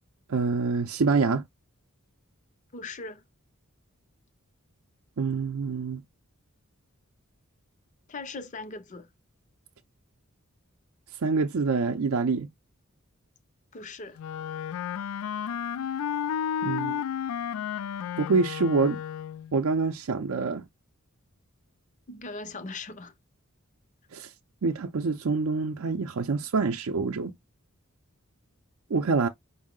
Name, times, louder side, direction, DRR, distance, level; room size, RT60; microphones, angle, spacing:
voice 1, 0.3-1.4 5.2-6.0 11.2-12.5 16.6-17.0 18.2-19.0 19.5-20.7 24.1-24.3 24.6-27.3 28.9-29.3, right 4 dB, 75° right, 0.5 m, -26 dB
voice 2, 2.7-3.2 8.1-9.1 13.7-14.2 22.1-23.1, left 3 dB, 35° left, 0.5 m, -39 dB
Wind instrument woodwind instrument, 14.2-19.5, left 8 dB, 80° left, 0.3 m, -32 dB
5.3 x 2.0 x 3.7 m
head